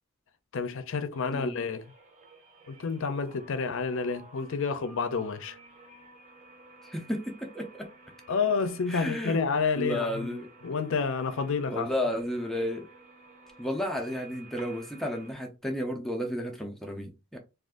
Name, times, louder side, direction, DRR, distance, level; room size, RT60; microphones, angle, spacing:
voice 1, 0.5-1.8 2.7-5.6 8.3-11.9, left 5 dB, 65° left, 0.5 m, -29 dB
sound 1, 1.1-15.3, right 2 dB, 35° right, 0.7 m, -53 dB
voice 2, 6.8-7.9 8.9-9.4 9.8-10.5 11.7-12.9 13.6-17.4, equal, ahead, 0.4 m, -32 dB
2.5 x 2.4 x 3.6 m
head